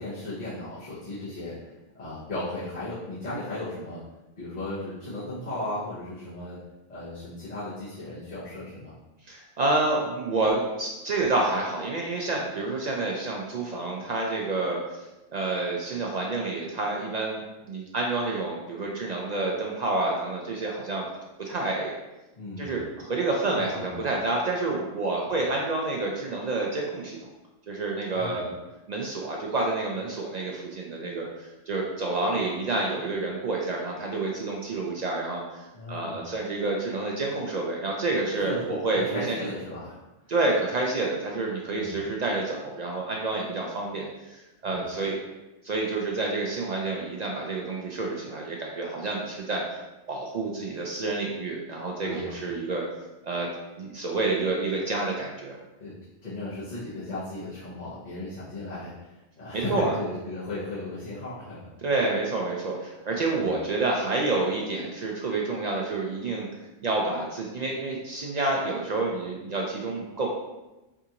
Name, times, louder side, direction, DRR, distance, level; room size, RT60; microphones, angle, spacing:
voice 1, 0.0-4.0 4.4-6.6 6.9-8.9 22.3-22.9 23.6-24.0 25.3-25.4 28.1-28.4 35.7-36.2 38.4-40.0 41.7-42.1 44.7-44.8 52.0-52.5 55.8-55.9 56.2-59.1 59.4-61.6 63.3-63.6, left 1 dB, 40° left, -11 dB, 0.9 m, -36 dB
voice 2, 9.3-15.0 15.3-17.4 17.7-21.1 21.4-21.9 22.6-27.2 27.7-28.5 28.9-39.4 40.3-45.2 45.6-49.6 50.1-52.8 53.2-53.5 53.8-55.6 59.5-59.9 61.8-66.5 66.8-70.3, right 2 dB, 65° right, -1 dB, 0.4 m, -28 dB
4.6 x 2.4 x 2.8 m, 1.0 s
omnidirectional pair, 1.2 m